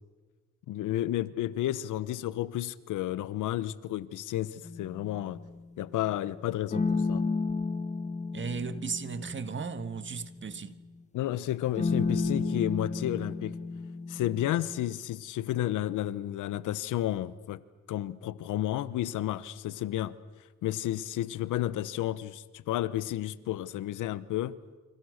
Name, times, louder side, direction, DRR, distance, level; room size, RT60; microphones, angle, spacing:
voice 1, 0.7-5.4 5.8-7.2 11.1-13.6 14.1-17.6 17.9-20.1 20.6-24.6, left 13 dB, 85° left, 1.1 m, -32 dB
sound 1, 4.6-5.6 6.7-10.8 11.7-15.0, left 4 dB, 25° left, 1.7 m, -33 dB
voice 2, 8.3-10.8, right 5 dB, 40° right, 1.7 m, -36 dB
30.0 x 26.0 x 6.6 m
cardioid pair, 90°, 30 cm